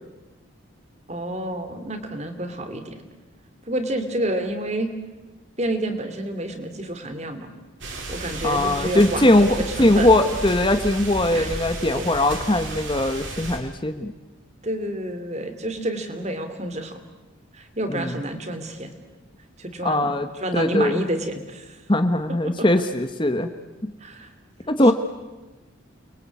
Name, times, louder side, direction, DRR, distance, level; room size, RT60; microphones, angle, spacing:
voice 1, 1.1-2.9 3.7-4.9 5.6-7.5 8.1-10.2 11.3-11.5 11.9-12.1 14.6-17.0 17.5-18.9 19.6-21.8 22.4-22.7 24.0-24.3 24.8-24.9, right 1 dB, 30° right, 8 dB, 2.8 m, -29 dB
sound 1, 7.8-13.6, right 2 dB, 60° right, 5.3 m, -33 dB
voice 2, 8.4-9.5 9.8-14.1 17.9-18.1 19.8-20.3 20.5-21.0 21.9-23.5 23.8-23.9 24.7-24.9, left 1 dB, 25° left, 9 dB, 1.1 m, -20 dB
30.0 x 23.0 x 8.5 m, 1.1 s
head